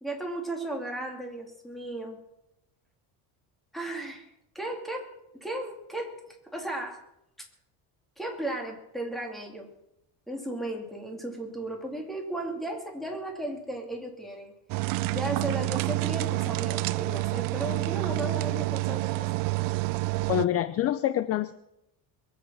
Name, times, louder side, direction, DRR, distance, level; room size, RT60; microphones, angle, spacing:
voice 1, 0.0-2.2 3.7-4.3 4.5-7.0 8.2-9.7 10.3-14.5 14.8-19.3, right 1 dB, ahead, 1 dB, 2.4 m, -35 dB
sound 1, 14.7-20.5, right 21 dB, 60° right, 0.5 m, -28 dB
voice 2, 20.3-21.5, left 12 dB, 40° left, 13 dB, 0.5 m, -26 dB
22.0 x 8.1 x 7.3 m, 0.84 s
cardioid pair, 175°, 39 cm